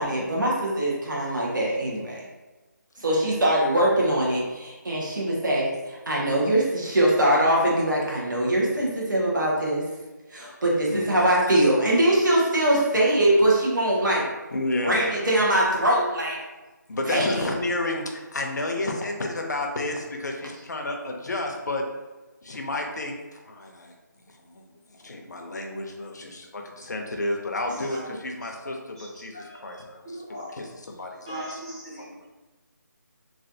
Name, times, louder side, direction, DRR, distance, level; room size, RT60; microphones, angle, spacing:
voice 1, 0.0-2.2 3.0-9.8 10.3-14.3 14.8-16.4 17.1-17.4, right 1 dB, 80° right, -4 dB, 1.1 m, -22 dB
voice 2, 14.5-15.1 16.9-21.8 22.4-23.9 24.3-32.0, left 2 dB, 65° left, 2 dB, 0.6 m, -31 dB
voice 3, 30.1-30.5 31.3-32.3, right 1 dB, 15° right, -10 dB, 0.6 m, -38 dB
3.2 x 2.4 x 2.6 m, 1.2 s
figure-of-eight pair, 175°, 10 cm